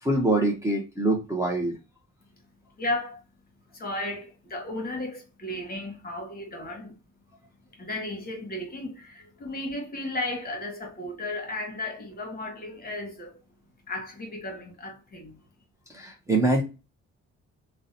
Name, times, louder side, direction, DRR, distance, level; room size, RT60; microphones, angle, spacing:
voice 1, 0.0-1.8 15.9-16.6, right 2 dB, 10° right, 0.5 m, -24 dB
voice 2, 2.8-3.2 3.7-7.0 7.7-13.4 13.9-15.4, left 2 dB, 30° left, 1.0 m, -34 dB
2.7 x 2.0 x 2.5 m
cardioid pair, 90°, 30 cm